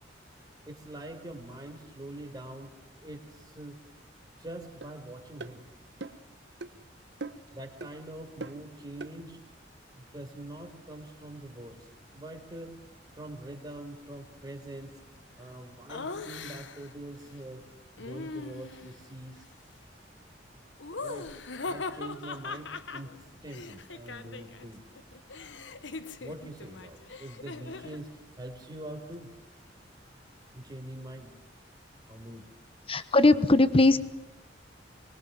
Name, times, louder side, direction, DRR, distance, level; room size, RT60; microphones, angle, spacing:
voice 1, 0.7-2.7 3.0-3.8 4.4-5.6 7.5-9.4 9.9-12.8 13.1-14.9 15.4-17.6 18.0-19.4 21.0-21.3 21.6-23.1 23.4-24.8 26.2-28.1 28.4-29.3 30.5-31.3 32.1-32.5, right 1 dB, 20° right, 2 dB, 4.3 m, -44 dB
sound 1, 4.8-4.9 5.4-5.6 6.0-6.3 6.6-6.7 7.2-7.5 7.8-7.9 8.4-8.6 9.0-9.1, right 3 dB, 65° right, 1.1 m, -40 dB
Laughter, 15.9-16.9 18.0-19.0 20.8-24.7 24.9-28.0, left 3 dB, 80° left, 1.2 m, -40 dB
voice 2, 32.9-34.0, left 2 dB, 30° left, 13 dB, 1.1 m, -20 dB
24.5 x 22.0 x 7.6 m, 0.90 s
head